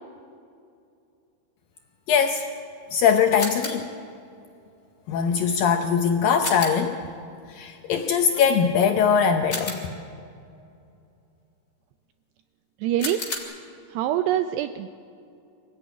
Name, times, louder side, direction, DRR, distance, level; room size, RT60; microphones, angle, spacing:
voice 1, 2.1-2.5 2.9-3.9 5.1-7.0 7.5-9.9, left 7 dB, 85° left, 5 dB, 2.0 m, -21 dB
sound 1, 3.4-4.0 6.4-7.0 9.5-10.2 13.0-13.4, left 3 dB, 25° left, 3.3 m, -33 dB
voice 2, 12.8-13.2 13.9-14.9, right 11 dB, 80° right, 9 dB, 2.5 m, -25 dB
25.0 x 15.0 x 9.3 m, 2.5 s
omnidirectional pair, 5.3 m